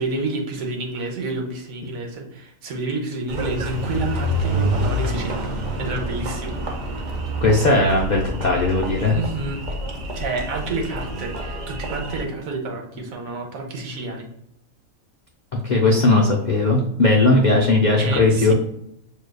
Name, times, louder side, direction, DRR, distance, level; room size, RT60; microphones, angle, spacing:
voice 1, 0.0-6.6 9.1-9.6 10.1-14.3 18.0-18.5, right 3 dB, 75° right, 2 dB, 1.2 m, -29 dB
Engine, 3.3-12.2, equal, 50° right, 0.6 m, -27 dB
voice 2, 7.4-9.2 15.6-18.5, left 2 dB, 60° left, -1 dB, 0.4 m, -18 dB
6.3 x 2.7 x 2.3 m, 0.78 s
omnidirectional pair, 1.5 m